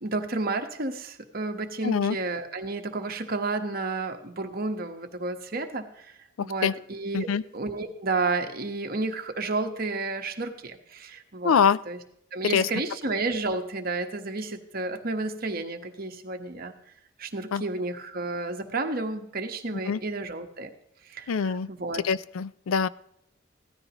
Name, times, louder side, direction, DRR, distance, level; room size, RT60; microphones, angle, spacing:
voice 1, 0.0-11.6 11.9-12.0 12.3-16.7 17.2-20.7 21.0-22.0, right 3 dB, 45° right, 5 dB, 1.2 m, -31 dB
voice 2, 1.8-2.2 6.4-6.7 7.1-7.4 11.4-11.8 12.4-12.7 17.5-17.6 19.9-20.0 21.3-21.7 22.0-22.9, left 6 dB, 85° left, 18 dB, 0.4 m, -24 dB
16.5 x 13.5 x 3.0 m, 0.75 s
head